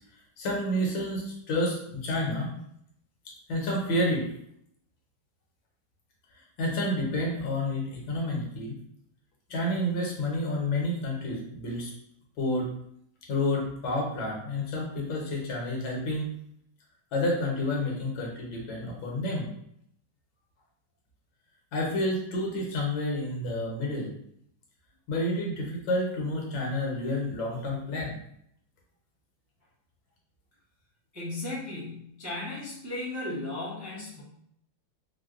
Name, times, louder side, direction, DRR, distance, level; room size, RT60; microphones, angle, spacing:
voice 1, 0.4-2.5 3.5-4.3 6.3-8.7 9.5-11.9 12.4-12.7 13.3-16.3 17.1-19.5 21.7-24.1 25.1-28.2, left 1 dB, 75° left, -1 dB, 1.6 m, -29 dB
voice 2, 31.1-34.2, left 2 dB, 25° right, -8 dB, 0.4 m, -35 dB
4.4 x 2.1 x 2.4 m, 0.72 s
omnidirectional pair, 2.1 m